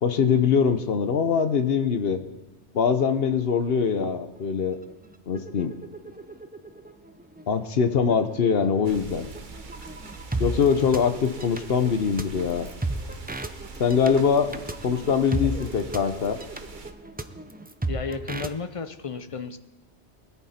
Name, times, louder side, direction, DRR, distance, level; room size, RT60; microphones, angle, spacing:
voice 1, 0.0-2.2 2.7-4.8 5.3-5.7 7.5-9.3 10.4-12.7 13.8-14.5 14.8-16.4, left 6 dB, 60° left, 10 dB, 1.0 m, -23 dB
sound 1, 3.1-3.2 3.4-3.9 4.3-18.5, right 2 dB, 15° right, 0.3 m, -36 dB
sound 2, 8.8-16.9, right 4 dB, 45° right, 1.1 m, -43 dB
voice 2, 17.9-19.6, left 5 dB, 35° left, 10 dB, 0.6 m, -33 dB
20.5 x 11.0 x 4.3 m, 1.1 s
omnidirectional pair, 1.2 m